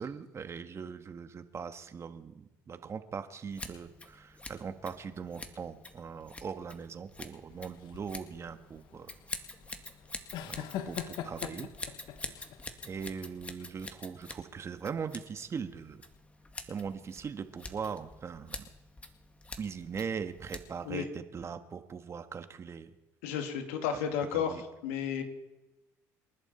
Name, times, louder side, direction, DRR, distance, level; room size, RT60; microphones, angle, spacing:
voice 1, 0.0-9.1 10.4-11.7 12.8-16.0 16.7-18.7 19.6-22.9 24.3-24.6, right 6 dB, 35° right, 9 dB, 1.6 m, -40 dB
Scissors, 3.5-21.0, left 2 dB, 15° left, 2.0 m, -47 dB
sound 1, 7.5-13.0, left 11 dB, 70° left, 1.1 m, -42 dB
voice 2, 23.2-24.5 24.8-25.2, left 8 dB, 90° left, 5 dB, 2.5 m, -32 dB
28.0 x 11.0 x 4.5 m, 1.0 s
supercardioid pair, 80°, 8 cm